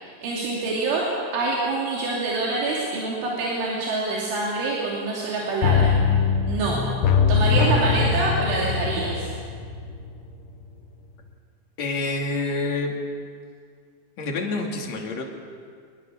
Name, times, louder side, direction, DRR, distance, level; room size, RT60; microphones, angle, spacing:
voice 1, 0.0-1.1 1.3-6.0 6.5-6.8 7.3-9.3, right 3 dB, 80° right, -4 dB, 5.2 m, -26 dB
sound 1, 5.6-10.3 10.6-10.7, left 5 dB, 75° left, 3.8 m, -22 dB
voice 2, 11.8-12.9 14.2-15.2, left 3 dB, 40° left, 0 dB, 3.2 m, -27 dB
25.5 x 21.0 x 7.3 m, 2.1 s
omnidirectional pair, 5.4 m